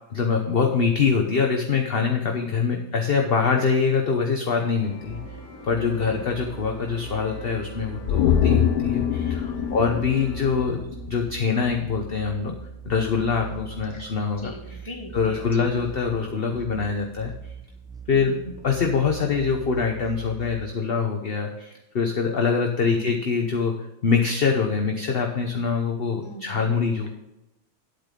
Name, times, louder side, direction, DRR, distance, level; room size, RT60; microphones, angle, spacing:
voice 1, 0.1-5.2 5.6-12.6 12.8-14.8 15.1-17.3 18.1-23.8 24.0-27.1, left 5 dB, 45° left, 2 dB, 1.0 m, -24 dB
sound 1, 4.8-10.8, left 2 dB, 65° left, 2.4 m, -43 dB
sound 2, 5.0-20.7, right 6 dB, 5° right, 0.6 m, -42 dB
sound 3, 8.1-11.5 11.8-11.9, left 9 dB, 90° left, 1.3 m, -24 dB
voice 2, 9.5-9.9 13.9-14.0 14.4-15.7 18.1-18.4 22.9-23.1 26.2-26.6, right 1 dB, 20° left, 2 dB, 1.5 m, -40 dB
11.0 x 8.6 x 3.8 m, 0.94 s
omnidirectional pair, 1.7 m